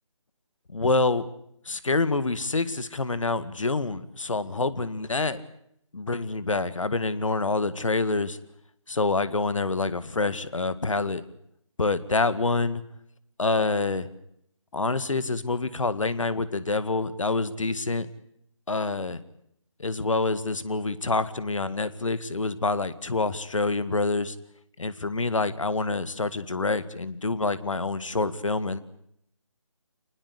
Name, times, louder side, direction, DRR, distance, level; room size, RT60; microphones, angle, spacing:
voice 1, 0.7-1.3 1.7-5.4 5.9-8.4 8.9-11.2 11.8-12.8 13.4-14.1 14.7-18.1 18.7-19.2 19.8-24.4 24.8-28.8, left 3 dB, 70° left, 15 dB, 2.0 m, -27 dB
26.0 x 20.0 x 8.3 m, 0.72 s
figure-of-eight pair, 160°, 17 cm